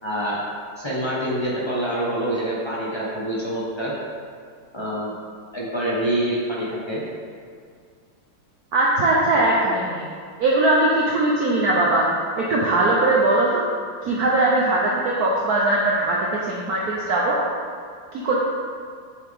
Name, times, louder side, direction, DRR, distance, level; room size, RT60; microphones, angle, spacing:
voice 1, 0.0-0.4 0.8-3.9 4.7-5.2 5.5-7.0, right 1 dB, 20° left, -6 dB, 0.8 m, -26 dB
voice 2, 8.7-10.1 10.4-13.6 14.0-16.2 16.5-17.4 18.2-18.4, right 2 dB, 60° right, -4 dB, 1.0 m, -20 dB
7.0 x 5.9 x 3.6 m, 2.1 s
omnidirectional pair, 2.3 m